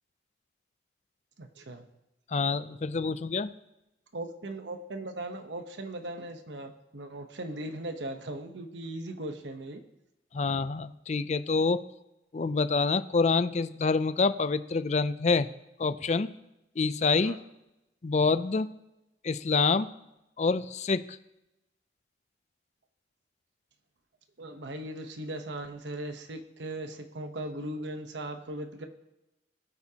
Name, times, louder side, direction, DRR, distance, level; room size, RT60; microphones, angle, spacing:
voice 1, 1.4-1.8 4.1-9.8 17.2-17.4 24.4-28.9, right 1 dB, 85° right, 6 dB, 1.0 m, -38 dB
voice 2, 2.3-3.5 10.3-11.8 12.3-15.5 15.8-16.3 16.8-17.4 18.0-18.7 19.2-19.9 20.4-21.0, left 4 dB, 40° left, 13 dB, 0.4 m, -26 dB
20.0 x 8.3 x 2.9 m, 0.94 s
head